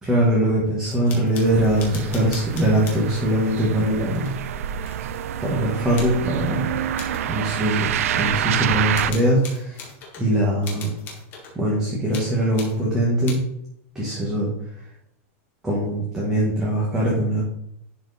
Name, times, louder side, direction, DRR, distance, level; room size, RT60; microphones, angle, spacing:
voice 1, 0.0-4.3 5.4-6.7 7.3-7.9 8.1-9.8 10.2-10.9 11.5-13.4 13.9-14.5 15.6-17.4, right 1 dB, 5° right, -6 dB, 1.6 m, -22 dB
sound 1, 0.8-3.3 4.1-5.2 5.9-6.2 6.9-7.3 8.3-8.4 8.9-10.3 10.6-11.6 12.1-12.8 13.2-13.3, left 4 dB, 25° left, 1.6 m, -40 dB
sound 2, 1.3-9.1, right 10 dB, 90° right, 0.6 m, -27 dB
11.0 x 4.6 x 4.2 m, 0.75 s
supercardioid pair, 175°, 8 cm